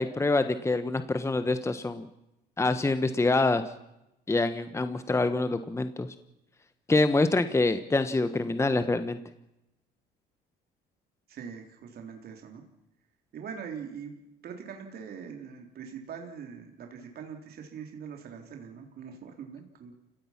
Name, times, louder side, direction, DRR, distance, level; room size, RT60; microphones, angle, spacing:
voice 1, 0.0-2.1 2.6-3.6 4.3-6.1 6.9-9.2, left 2 dB, 15° left, 10 dB, 1.2 m, -26 dB
voice 2, 11.3-12.6 13.3-14.2 14.4-19.9, right 7 dB, 55° right, 3 dB, 3.8 m, -42 dB
29.0 x 17.0 x 6.0 m, 0.89 s
supercardioid pair, 90°, 18 cm